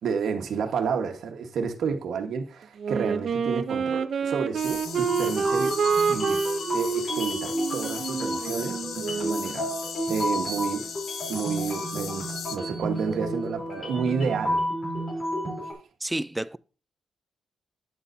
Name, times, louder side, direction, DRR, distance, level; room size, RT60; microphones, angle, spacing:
voice 1, 0.0-5.7 6.1-6.4 6.7-9.7 10.1-10.8 11.3-14.7, right 6 dB, 70° right, 1.2 m, -30 dB
Wind instrument woodwind instrument, 2.8-9.5, right 5 dB, 55° right, 0.6 m, -28 dB
sound 1, 4.5-12.6, left 7 dB, 70° left, 0.7 m, -37 dB
sound 2, 4.8-15.7, equal, 40° left, 3.2 m, -32 dB
voice 2, 16.0-16.6, right 1 dB, 10° right, 0.3 m, -30 dB
11.0 x 8.6 x 2.7 m
cardioid pair, 125°, 0 cm